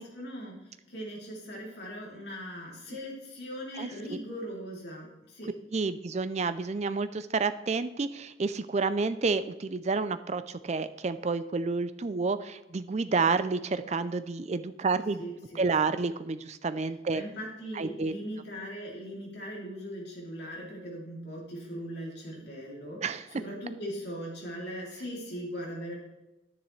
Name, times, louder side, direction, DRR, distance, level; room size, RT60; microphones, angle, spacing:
voice 1, 0.0-5.5 15.2-15.6 17.1-23.0 23.3-26.0, equal, 55° left, -3 dB, 3.0 m, -39 dB
voice 2, 3.8-4.2 5.7-15.2 15.5-17.2 17.7-18.1 23.0-23.3, right 4 dB, 35° right, 12 dB, 0.4 m, -30 dB
10.5 x 10.0 x 3.2 m, 1.0 s
head